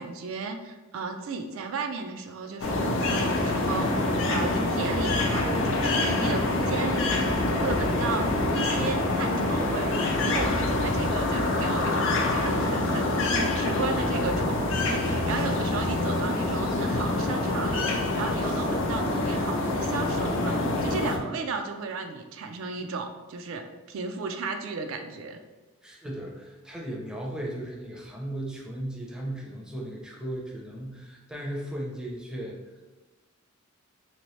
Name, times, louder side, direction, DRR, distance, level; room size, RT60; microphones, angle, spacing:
voice 1, 0.0-25.4, right 4 dB, 75° right, 5 dB, 0.4 m, -34 dB
sound 1, 2.6-21.2, left 2 dB, 65° left, 0.5 m, -26 dB
voice 2, 25.8-32.6, right 1 dB, 5° right, -2 dB, 0.5 m, -36 dB
3.4 x 2.8 x 3.1 m, 1.2 s
head